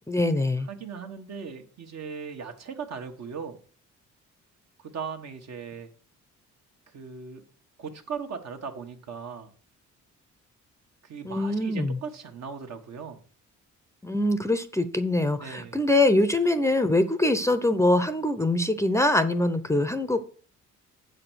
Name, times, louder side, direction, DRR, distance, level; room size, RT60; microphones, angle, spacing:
voice 1, 0.1-0.7 11.2-12.0 14.0-20.2, left 1 dB, 10° left, 10 dB, 0.6 m, -23 dB
voice 2, 0.7-3.6 4.8-5.9 6.9-7.4 7.8-9.5 11.0-13.2 15.4-15.8, right 6 dB, 60° right, 5 dB, 1.4 m, -38 dB
8.1 x 5.0 x 6.3 m, 0.43 s
cardioid pair, 90°, 30 cm